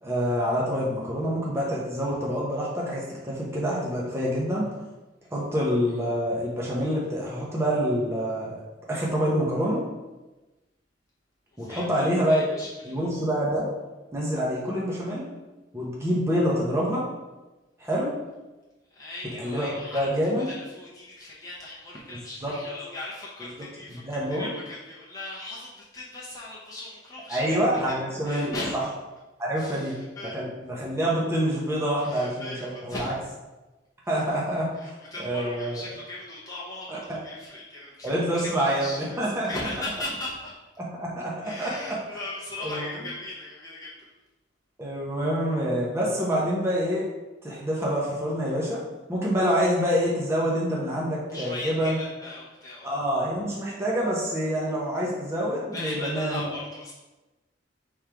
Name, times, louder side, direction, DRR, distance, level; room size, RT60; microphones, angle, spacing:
voice 1, 0.0-4.7 5.3-8.5 8.9-9.8 11.6-12.5 12.8-13.7 14.1-15.3 15.7-17.0 17.8-18.1 19.4-20.5 22.4-22.5 24.0-24.5 27.3-28.5 29.4-30.0 30.3-33.1 34.1-34.9 35.2-35.8 36.9-37.2 38.0-39.5 40.8-42.0 42.6-42.9 44.8-47.1 47.4-48.8 49.1-52.0 52.8-56.5, equal, 15° right, -5 dB, 0.8 m, -26 dB
voice 2, 11.5-12.9 18.9-20.1 20.4-28.0 28.2-28.8 29.6-30.4 32.0-33.2 34.7-40.6 41.4-44.1 51.3-52.9 55.7-56.9, left 2 dB, 20° left, -7 dB, 0.7 m, -38 dB
3.7 x 3.2 x 4.5 m, 1.1 s
head